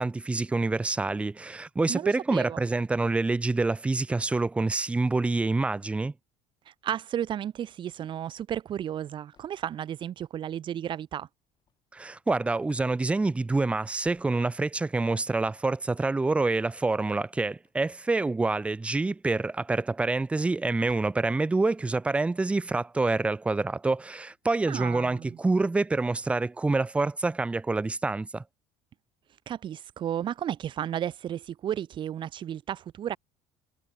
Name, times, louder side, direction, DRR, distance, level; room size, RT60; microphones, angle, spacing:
voice 1, 0.0-6.1 11.9-28.4, right 3 dB, 10° right, 0.5 m, -27 dB
voice 2, 1.9-2.6 6.7-11.3 24.7-25.4 29.5-33.2, right 10 dB, 35° right, 0.8 m, -33 dB
sound 1, 8.4-22.9, left 7 dB, 30° left, 8.0 m, -68 dB
cardioid pair, 155°, 15 cm